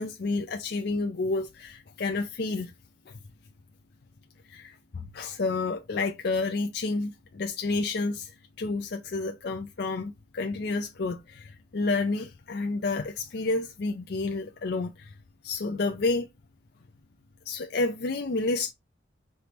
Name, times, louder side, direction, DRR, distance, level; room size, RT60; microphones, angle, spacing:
voice 1, 0.0-2.7 3.1-3.2 4.5-8.3 8.6-15.1 15.4-16.3 17.5-18.7, left 3 dB, 55° left, 0.5 m, -30 dB
5.1 x 3.1 x 3.0 m
head